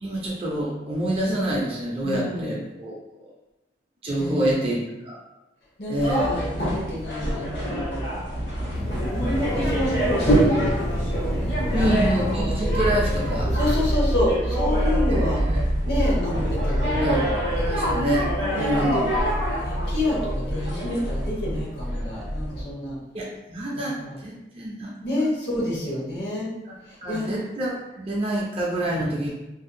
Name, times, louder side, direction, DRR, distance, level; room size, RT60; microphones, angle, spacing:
voice 1, 0.0-2.9 4.0-5.2 5.9-6.4 11.7-13.5 15.1-15.7 17.0-17.2 17.6-18.3 18.6-19.0 23.1-23.9 24.2-25.3 26.7-29.3, right 1 dB, 35° right, -4 dB, 0.4 m, -27 dB
voice 2, 2.0-2.6 4.1-4.8 5.8-8.0 9.1-10.6 11.4-11.8 12.6-12.9 13.4-15.4 15.8-17.2 18.4-19.0 19.6-23.0 23.7-24.2 25.0-26.5 26.9-27.3 28.8-29.2, left 1 dB, 65° left, -5 dB, 0.9 m, -29 dB
sound 1, 6.0-22.6, equal, 90° left, 1.2 m, -25 dB
sound 2, 8.7-13.9, equal, 35° left, 0.4 m, -30 dB
2.6 x 2.1 x 2.5 m, 0.98 s
head